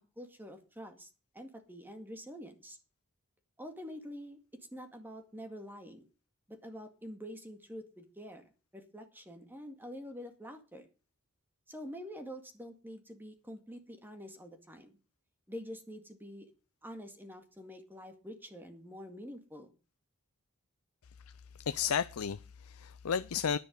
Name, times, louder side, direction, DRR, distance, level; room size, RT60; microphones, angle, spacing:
voice 1, 0.2-1.1 1.3-2.8 3.6-4.4 4.7-6.0 6.5-8.4 8.7-10.9 11.7-15.0 15.5-16.5 16.8-19.7, equal, 10° right, 2.1 m, -46 dB
voice 2, 21.6-23.6, left 7 dB, 70° left, 0.5 m, -33 dB
10.5 x 10.5 x 5.3 m
head